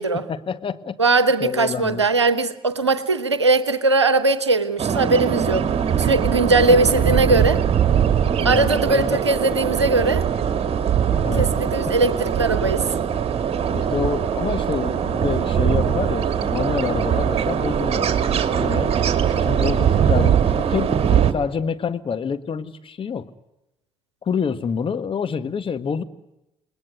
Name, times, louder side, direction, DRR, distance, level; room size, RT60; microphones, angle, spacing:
voice 1, 0.1-1.0 1.4-2.0 6.7-6.8 8.4-9.2 11.1-11.9 13.7-18.1 18.6-18.9 19.4-23.3 24.2-26.0, left 6 dB, 40° left, 1.6 m, -27 dB
voice 2, 1.0-5.7 6.0-7.6 8.4-10.2 11.4-12.8, right 3 dB, 85° right, 0.9 m, -20 dB
sound 1, 4.8-21.3, right 8 dB, 45° right, 2.2 m, -21 dB
29.0 x 20.5 x 9.6 m
figure-of-eight pair, 45°, 14 cm